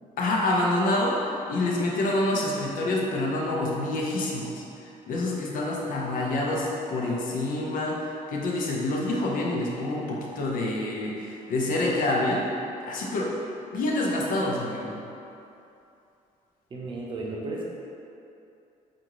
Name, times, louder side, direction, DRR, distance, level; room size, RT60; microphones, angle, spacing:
voice 1, 0.2-1.2 1.5-12.4 12.8-13.3 13.7-15.0, left 2 dB, 70° left, -2 dB, 0.7 m, -27 dB
voice 2, 16.7-17.7, right 2 dB, 35° right, -3 dB, 0.7 m, -34 dB
4.7 x 2.6 x 3.0 m, 2.7 s
cardioid pair, 105°, 14 cm